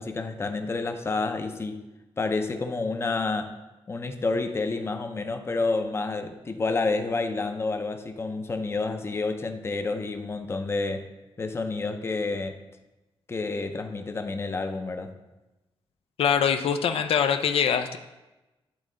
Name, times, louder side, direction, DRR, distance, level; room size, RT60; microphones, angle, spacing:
voice 1, 0.0-1.8 2.2-3.6 3.9-11.1 11.4-12.6 13.3-15.1, left 3 dB, 25° left, 7 dB, 0.5 m, -29 dB
voice 2, 16.2-18.0, left 7 dB, 80° left, 8 dB, 0.4 m, -23 dB
10.0 x 3.6 x 3.8 m, 1.0 s
wide cardioid pair, 130°, 10 cm